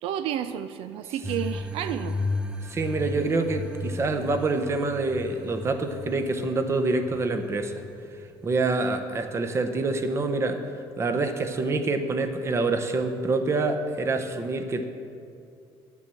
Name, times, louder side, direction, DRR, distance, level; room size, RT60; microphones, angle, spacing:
voice 1, 0.0-2.2, right 10 dB, 80° right, 11 dB, 0.4 m, -31 dB
sound 1, 1.2-9.3, left 2 dB, 10° right, 0.5 m, -35 dB
voice 2, 2.7-7.8 8.4-10.6 11.0-14.8, right 3 dB, 30° right, 7 dB, 0.9 m, -26 dB
10.0 x 7.3 x 7.6 m, 2.4 s
cardioid pair, 135°, 10 cm